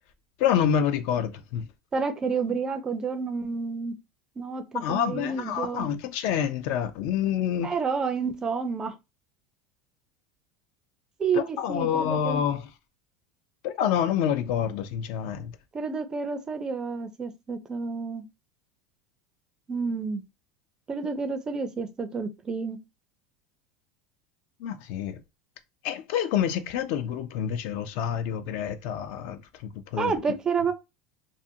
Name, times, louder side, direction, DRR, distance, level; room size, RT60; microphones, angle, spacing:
voice 1, 0.4-1.7 4.7-7.7 11.3-12.7 13.6-15.5 24.6-25.2 25.8-29.4 29.7-30.1, left 9 dB, 60° left, 0.4 m, -27 dB
voice 2, 1.9-3.9 4.4-5.9 7.6-8.9 11.2-12.4 15.7-18.3 19.7-20.2 20.9-22.8 30.0-30.7, right 5 dB, 20° right, 0.4 m, -29 dB
2.5 x 2.5 x 2.7 m
supercardioid pair, 140°, 4 cm